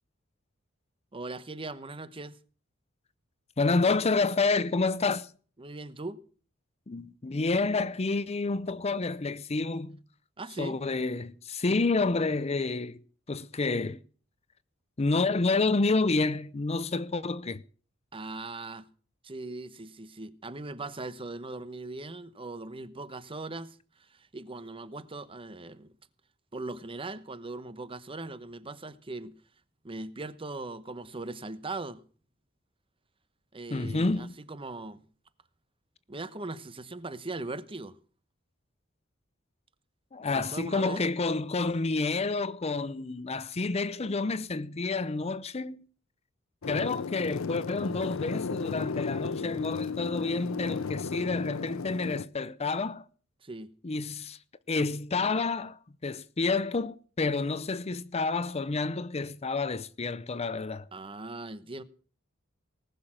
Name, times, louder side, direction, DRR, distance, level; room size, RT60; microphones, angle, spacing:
voice 1, 1.1-2.4 5.6-6.2 10.4-10.8 18.1-18.9 19.2-25.9 26.5-29.4 29.8-32.0 33.5-35.0 36.1-38.0 40.3-41.1 53.4-53.7 60.9-61.8, right 2 dB, 25° right, 0.9 m, -39 dB
voice 2, 3.6-5.3 6.9-10.0 10.6-13.0 13.3-14.0 15.0-17.6 33.7-34.3 40.1-45.8 46.7-53.1 53.8-54.4 54.7-60.9, left 3 dB, 30° left, 0.6 m, -29 dB
sound 1, 46.6-52.3, left 5 dB, 90° left, 0.6 m, -34 dB
19.5 x 6.8 x 7.5 m
head